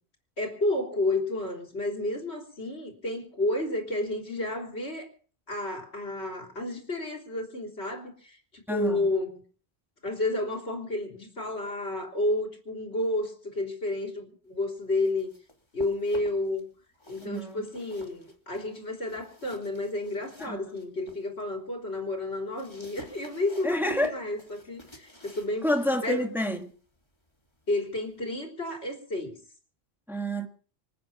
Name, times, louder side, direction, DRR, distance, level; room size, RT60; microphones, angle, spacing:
voice 1, 0.4-5.1 5.5-9.4 10.0-15.3 15.7-16.7 17.1-25.7 26.0-26.3 27.7-29.4, left 2 dB, 75° left, 3.9 m, -31 dB
voice 2, 8.7-9.1 17.2-17.7 20.4-20.7 23.6-24.2 25.6-26.7 30.1-30.5, equal, ahead, 1.7 m, -28 dB
sound 1, 14.8-16.6 16.9-21.3 21.7-28.3, left 1 dB, 25° left, 2.7 m, -50 dB
26.5 x 9.3 x 5.6 m
omnidirectional pair, 1.1 m